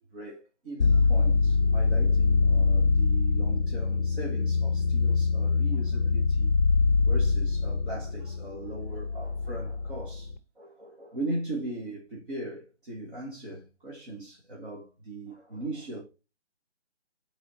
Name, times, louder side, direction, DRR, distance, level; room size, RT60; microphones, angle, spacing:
voice 1, 0.1-6.5 7.0-16.0, right 1 dB, 45° right, 1.9 m, -39 dB
sound 1, 0.8-10.4, left 4 dB, 40° left, 0.6 m, -24 dB
6.9 x 4.2 x 4.3 m
hypercardioid pair, 165°, 35 cm